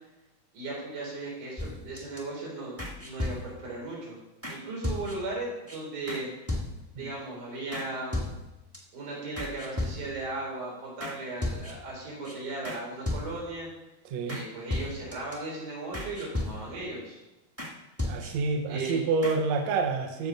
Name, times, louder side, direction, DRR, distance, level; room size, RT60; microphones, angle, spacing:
voice 1, 0.5-4.2 4.5-6.3 7.0-8.2 8.9-13.7 14.2-17.2 18.2-18.3 18.7-19.0, right 2 dB, 85° right, -4 dB, 5.7 m, -37 dB
sound 1, 1.6-2.2 2.8-3.7 4.4-4.6 4.8-5.4 5.7-5.8 6.1-6.2 6.5-7.0 7.7-7.9 8.1-8.8 9.4-10.3 11.0-11.1 11.4-11.9 12.2-12.3 12.6-12.8 13.1-13.6 14.3-14.4 14.7-15.3 15.9-16.9 17.6-17.7 18.0-18.5 18.8-18.9 19.2-19.4, left 1 dB, 15° right, 0.5 m, -35 dB
voice 2, 14.1-14.4 18.0-20.3, right 4 dB, 70° right, 4 dB, 1.9 m, -28 dB
14.5 x 6.0 x 5.3 m, 0.98 s
omnidirectional pair, 3.5 m